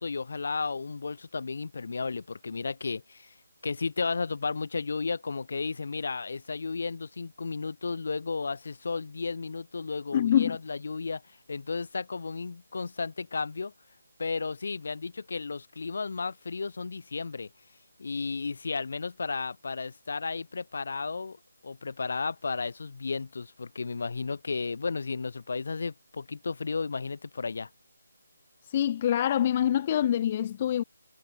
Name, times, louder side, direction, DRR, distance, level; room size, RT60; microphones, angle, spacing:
voice 1, 0.0-3.3 3.6-11.2 11.5-13.7 14.2-17.5 18.0-21.4 21.6-27.7, left 4 dB, 50° left, 6.3 m, -33 dB
voice 2, 10.1-10.6 28.7-30.8, left 10 dB, 25° left, 1.3 m, -25 dB
figure-of-eight pair, 150°, 0 cm